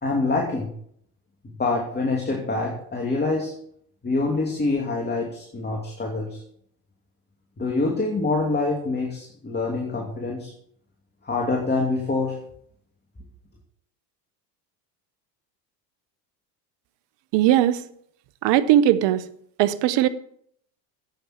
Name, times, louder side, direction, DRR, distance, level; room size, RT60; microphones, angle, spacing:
voice 1, 0.0-0.7 1.6-3.5 4.0-6.4 7.6-10.5 11.2-12.3, left 3 dB, 20° left, 0 dB, 2.9 m, -25 dB
voice 2, 17.3-17.8 18.4-19.2 19.6-20.1, right 12 dB, 55° right, 14 dB, 1.1 m, -19 dB
13.5 x 8.9 x 4.5 m, 0.66 s
hypercardioid pair, 80°, 50 cm